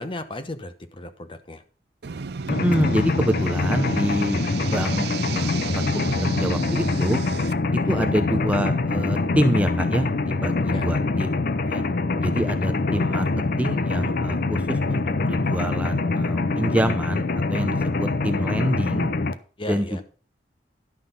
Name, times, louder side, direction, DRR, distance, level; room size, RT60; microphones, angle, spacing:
voice 1, 0.0-1.6 7.8-8.1 10.7-10.9 19.6-20.0, left 2 dB, 30° left, 9 dB, 0.9 m, -35 dB
sound 1, 2.0-7.5, right 5 dB, 65° right, 0.5 m, -34 dB
Mechanisms, 2.5-19.3, left 3 dB, 55° left, 0.6 m, -24 dB
voice 2, 2.5-4.4 4.6-7.2 7.9-11.8 12.2-13.3 13.6-19.1 19.7-20.0, equal, 10° right, 8 dB, 0.6 m, -26 dB
11.5 x 6.0 x 5.4 m, 0.39 s
head